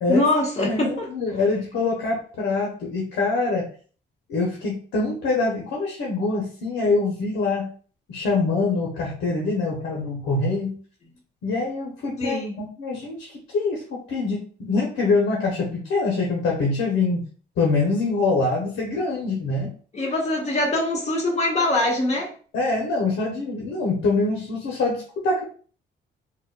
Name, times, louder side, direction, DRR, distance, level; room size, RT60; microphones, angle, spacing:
voice 1, 0.1-1.1 12.2-12.5 19.9-22.3, left 1 dB, 35° left, -2 dB, 1.4 m, -23 dB
voice 2, 0.6-3.7 4.3-7.7 8.1-10.8 11.4-17.2 17.6-19.7 22.5-25.4, left 3 dB, 80° left, -2 dB, 0.9 m, -24 dB
3.9 x 2.2 x 2.3 m, 0.41 s
cardioid pair, 90°, 20 cm